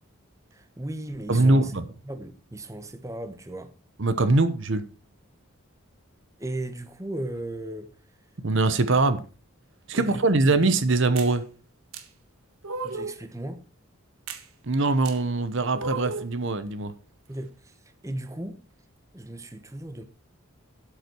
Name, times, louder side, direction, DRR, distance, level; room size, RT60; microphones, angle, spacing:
voice 1, 0.5-1.7 2.0-3.7 6.4-7.9 9.9-10.6 12.8-13.6 17.3-18.6 19.1-20.0, right 1 dB, 15° right, 1.1 m, -36 dB
voice 2, 1.3-1.8 4.0-4.8 8.4-9.2 9.9-11.4 14.6-16.9, right 2 dB, 60° right, 0.9 m, -22 dB
sound 1, 11.2-11.3 11.9-12.0 12.6-13.2 14.3-14.4 15.0-15.2 15.8-16.3, right 4 dB, 85° right, 1.6 m, -34 dB
12.5 x 8.2 x 4.5 m
head